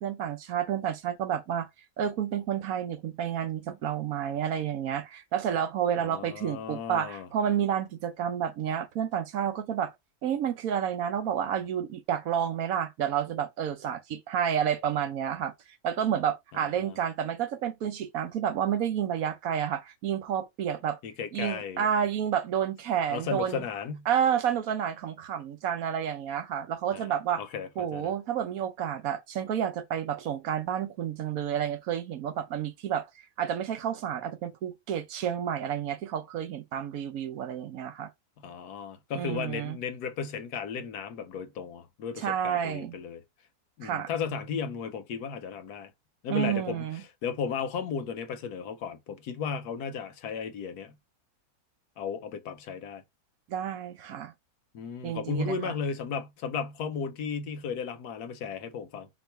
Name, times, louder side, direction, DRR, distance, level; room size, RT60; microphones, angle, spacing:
voice 1, 0.0-1.7 2.0-9.9 10.2-15.5 15.8-21.0 21.3-23.6 24.1-27.4 27.8-33.1 33.4-38.1 39.1-39.8 42.2-43.0 43.8-44.1 46.3-47.0 53.5-54.3 55.0-55.7, right 9 dB, 70° right, 1.1 m, -30 dB
voice 2, 6.0-7.3 16.5-17.0 21.0-21.9 23.1-24.1 26.9-28.1 38.4-43.2 43.8-45.9 46.2-50.9 52.0-53.0 54.7-59.1, left 6 dB, 80° left, 1.3 m, -35 dB
4.6 x 2.5 x 4.4 m
omnidirectional pair, 1.6 m